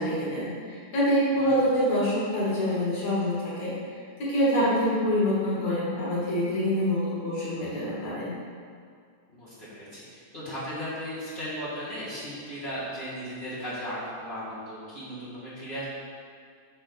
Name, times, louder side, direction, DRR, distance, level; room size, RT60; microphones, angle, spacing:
voice 1, 0.0-3.7 4.2-8.3, equal, 65° left, -8 dB, 2.5 m, -26 dB
voice 2, 9.3-15.8, equal, 40° left, -12 dB, 0.7 m, -36 dB
6.5 x 3.5 x 5.9 m, 2.2 s
omnidirectional pair, 3.7 m